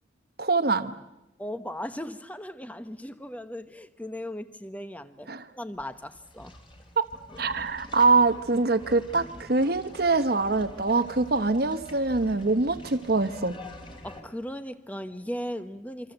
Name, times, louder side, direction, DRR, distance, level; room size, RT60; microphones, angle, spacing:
voice 1, 0.4-0.9 5.3-5.5 7.0-7.1 7.4-13.6, right 3 dB, 50° right, 10 dB, 1.0 m, -24 dB
voice 2, 1.4-6.5 14.0-16.1, equal, 10° left, 11 dB, 1.0 m, -37 dB
sound 1, 5.7-14.2, left 1 dB, 25° left, 3.4 m, -46 dB
28.0 x 25.0 x 8.0 m, 0.98 s
head